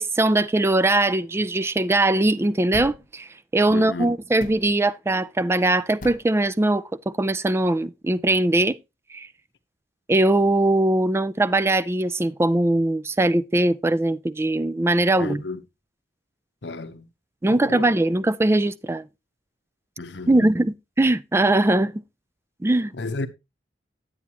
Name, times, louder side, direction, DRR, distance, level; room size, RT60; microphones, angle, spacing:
voice 1, 0.0-3.3 3.5-8.8 9.1-9.3 10.1-15.4 17.4-19.1 20.3-21.9 22.6-22.9, right 2 dB, 15° right, 0.4 m, -21 dB
sound 1, 2.7-3.1 4.4-4.7 6.0-6.3, left 1 dB, 50° left, 1.0 m, -37 dB
voice 2, 3.7-4.1 15.2-15.6 16.6-17.1 17.5-17.9 20.0-20.5 23.0-23.3, left 3 dB, 75° left, 1.0 m, -32 dB
10.0 x 8.4 x 2.9 m
head